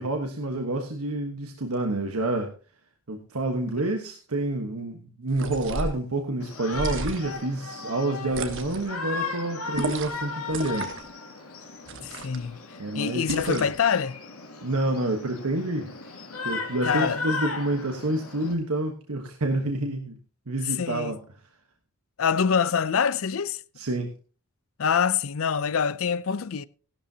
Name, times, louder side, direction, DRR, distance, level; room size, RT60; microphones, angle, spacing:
voice 1, 0.0-2.5 3.1-10.9 12.8-13.7 14.6-15.9 16.4-20.2 20.5-21.2 23.8-24.1, right 2 dB, 80° right, 1.2 m, -28 dB
sound 1, 5.3-6.0 6.7-7.4 8.3-8.9 9.7-10.2 10.5-11.1 11.9-12.4 13.3-13.8, right 2 dB, 60° right, 1.3 m, -33 dB
Shout, 6.4-18.5, left 4 dB, 85° left, 2.4 m, -36 dB
voice 2, 12.0-12.6 12.9-14.2 16.9-17.2 20.7-21.2 22.2-23.6 24.8-26.6, left 7 dB, 65° left, 0.5 m, -25 dB
15.5 x 11.5 x 2.8 m
head